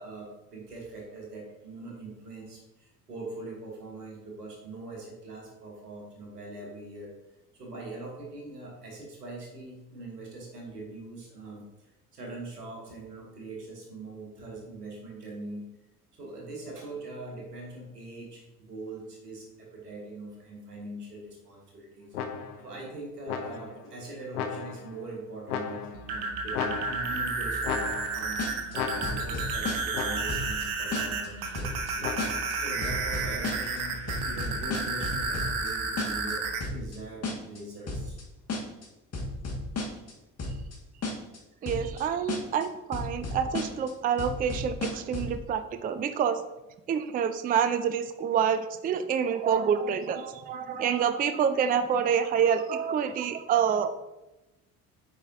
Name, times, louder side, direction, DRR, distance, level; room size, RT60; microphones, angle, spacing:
voice 1, 0.0-7.1 7.5-15.7 16.2-22.2 22.6-32.1 32.6-38.2, right 2 dB, 85° right, -1 dB, 1.5 m, -42 dB
sound 1, 22.1-22.7 23.3-23.9 24.3-25.0 25.5-26.1 26.5-27.3 27.6-28.4 28.7-29.5 29.9-30.5 32.0-32.6, left 7 dB, 75° left, 0.8 m, -35 dB
sound 2, 25.9-36.6, right 4 dB, 65° right, 1.0 m, -32 dB
sound 3, 28.4-28.8 29.0-30.0 30.3-30.6 30.9-31.3 31.6-31.9 32.2-32.5 32.8-33.8 34.1-35.7 36.0-36.3 36.6-37.0 37.2-37.6 37.9-38.2 38.5-38.9 39.1-40.1 40.4-40.8 41.0-41.4 41.7-42.0 42.3-42.6 42.9-43.9 44.2-45.4, left 2 dB, 35° left, 1.8 m, -33 dB
voice 2, 41.6-46.4 46.9-53.9, right 7 dB, 20° right, 11 dB, 0.4 m, -27 dB
8.5 x 4.9 x 2.7 m, 0.98 s
figure-of-eight pair, 50°, 46 cm